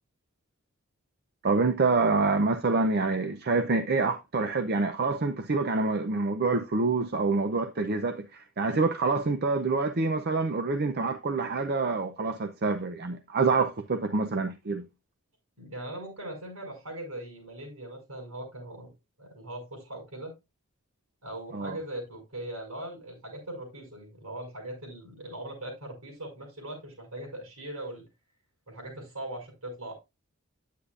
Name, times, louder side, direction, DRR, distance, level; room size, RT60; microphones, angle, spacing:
voice 1, 1.4-14.8 21.5-21.8, right 3 dB, 45° right, 0.6 m, -26 dB
voice 2, 15.6-18.9 19.2-20.3 21.2-28.0 28.7-29.9, right 1 dB, 80° right, 6.3 m, -40 dB
10.0 x 8.3 x 2.5 m
head